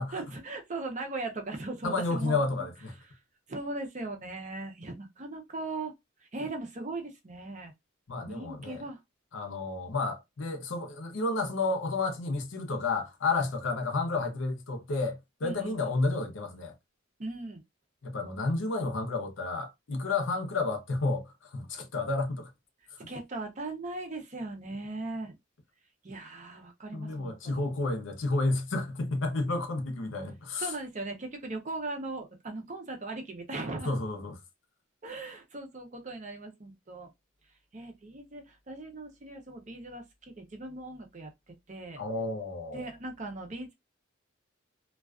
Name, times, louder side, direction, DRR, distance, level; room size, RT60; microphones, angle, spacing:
voice 1, 0.1-2.4 3.5-5.9 6.3-7.7 8.3-9.0 15.4-15.8 17.2-17.6 23.1-25.3 26.0-27.7 30.6-34.0 35.0-37.1 37.7-41.3 41.7-42.0 42.7-43.7, right 2 dB, 35° right, 0.6 m, -38 dB
voice 2, 1.8-3.0 8.1-8.8 9.3-16.7 18.0-22.5 26.9-30.7 33.8-34.4 42.0-42.8, left 3 dB, 70° left, 0.6 m, -31 dB
2.3 x 2.3 x 2.3 m
head